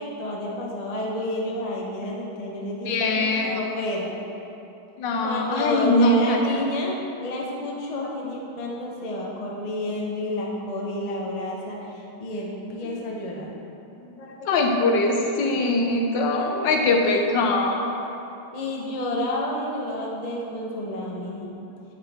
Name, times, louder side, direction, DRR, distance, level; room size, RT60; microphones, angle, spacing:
voice 1, 0.0-4.1 5.2-13.5 16.4-16.6 17.0-17.2 18.5-21.5, left 1 dB, 40° left, -2 dB, 0.5 m, -30 dB
voice 2, 2.8-3.7 5.0-6.4 12.8-12.9 14.2-17.9, left 2 dB, 70° left, 2 dB, 1.4 m, -22 dB
9.0 x 6.5 x 3.5 m, 3.0 s
omnidirectional pair, 2.2 m